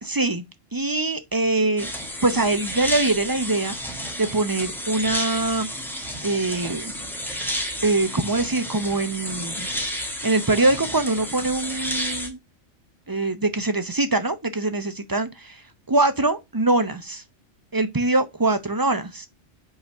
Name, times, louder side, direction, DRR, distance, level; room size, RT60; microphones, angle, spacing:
voice 1, 0.0-0.4 0.7-1.9 2.2-3.7 4.2-5.7 6.2-6.9 7.8-9.7 10.2-12.4 13.1-17.2 17.7-19.3, right 2 dB, 25° right, 0.6 m, -23 dB
sound 1, 1.8-12.3, equal, ahead, 1.5 m, -31 dB
5.5 x 4.0 x 5.4 m
omnidirectional pair, 1.3 m